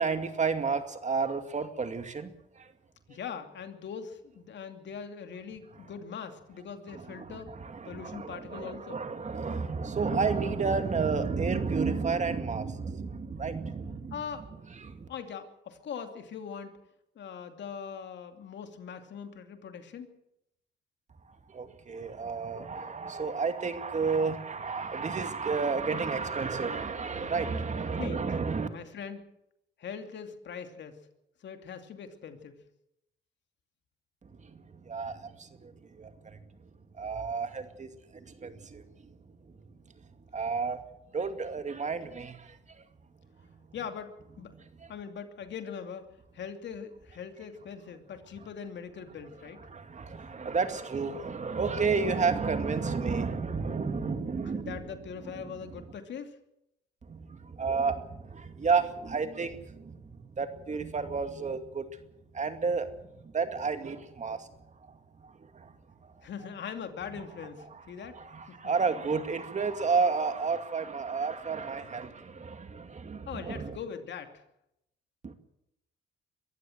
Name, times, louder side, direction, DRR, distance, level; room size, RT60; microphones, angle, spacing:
voice 1, 0.0-2.3 2.6-2.7 7.2-7.3 7.6-14.2 14.8-15.1 21.5-28.7 34.9-35.7 36.0-36.1 37.0-38.8 40.3-40.8 41.1-42.5 49.7-54.8 57.1-60.0 60.4-61.8 62.3-62.9 63.2-64.5 65.5-65.7 68.2-73.8 75.2-75.3, right 5 dB, 35° right, 8 dB, 2.3 m, -31 dB
voice 2, 3.1-7.5 7.9-9.0 14.1-14.5 15.1-16.7 17.2-20.1 28.0-28.2 28.7-29.2 29.8-31.0 31.4-32.6 43.7-44.1 44.4-44.5 44.9-46.1 46.3-49.6 54.5-56.4 66.2-68.2 68.5-68.6 73.3-74.4, left 7 dB, 65° left, 6 dB, 2.7 m, -41 dB
23.0 x 15.0 x 7.9 m, 0.83 s
cardioid pair, 90°, 20 cm